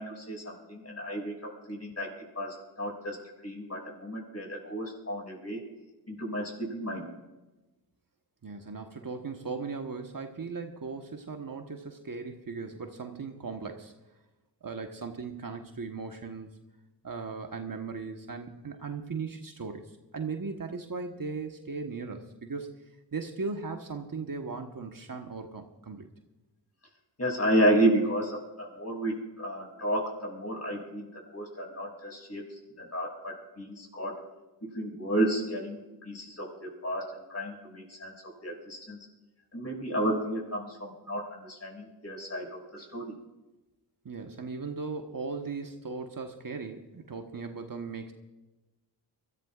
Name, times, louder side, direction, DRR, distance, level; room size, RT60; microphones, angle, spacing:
voice 1, 0.0-2.1 2.3-3.2 3.4-5.6 6.1-7.0 27.2-32.4 32.8-34.2 34.6-38.1 38.4-39.0 39.5-43.2, right 1 dB, 35° left, 0 dB, 6.3 m, -32 dB
voice 2, 8.4-13.9 14.6-16.5 17.0-19.8 20.1-22.8 23.1-26.1 44.0-48.1, right 4 dB, 50° right, 4 dB, 1.4 m, -38 dB
24.5 x 14.0 x 2.5 m, 1.1 s
cardioid pair, 45°, 43 cm